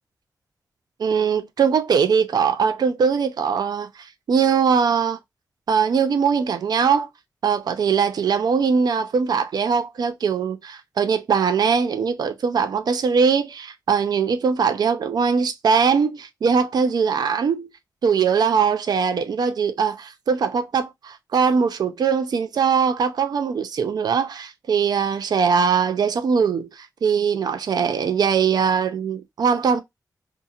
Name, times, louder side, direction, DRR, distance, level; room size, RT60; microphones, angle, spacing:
voice 1, 1.0-5.2 5.7-7.1 7.4-17.7 18.0-29.8, right 6 dB, 70° right, 0.4 m, -21 dB
2.6 x 2.4 x 2.6 m
wide cardioid pair, 155°, 7 cm